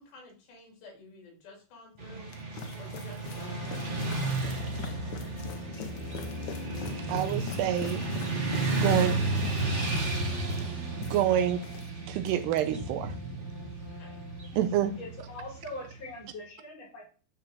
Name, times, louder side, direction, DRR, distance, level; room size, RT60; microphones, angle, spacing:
voice 1, 0.0-2.3 2.7-4.7 13.8-14.2, left 3 dB, 70° left, 6.1 m, -52 dB
sound 1, 2.0-11.9 12.2-12.6, left 6 dB, 90° left, 1.6 m, -43 dB
Motorcycle / Traffic noise roadway noise, 2.0-16.1, right 3 dB, 45° right, 0.9 m, -33 dB
Trumpet, 3.3-15.5, left 4 dB, 20° left, 1.4 m, -47 dB
voice 2, 7.1-8.1 8.8-9.2 11.0-11.6 12.1-13.1 14.6-15.0, right 10 dB, 80° right, 2.6 m, -27 dB
voice 3, 15.0-17.1, left 2 dB, 35° left, 5.4 m, -42 dB
12.5 x 5.0 x 7.6 m
omnidirectional pair, 5.0 m